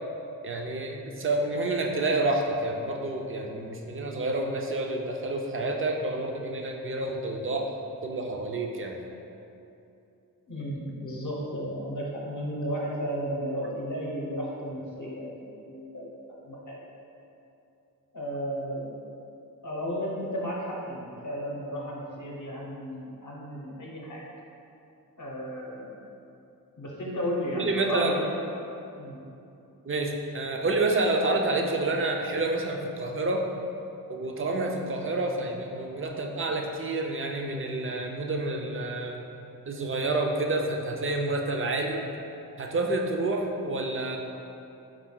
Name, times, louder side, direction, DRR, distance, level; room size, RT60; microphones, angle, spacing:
voice 1, 0.4-7.7 8.0-9.0 27.6-28.2 29.9-33.5 34.1-39.2 39.7-42.0 42.6-44.2, right 2 dB, 35° right, 1 dB, 0.4 m, -28 dB
voice 2, 10.5-16.1 16.4-16.9 18.1-18.9 19.6-24.2 25.2-26.1 26.8-28.3 29.0-29.2, equal, 55° left, -3 dB, 0.7 m, -34 dB
4.6 x 2.2 x 3.7 m, 2.8 s
wide cardioid pair, 95°, 36 cm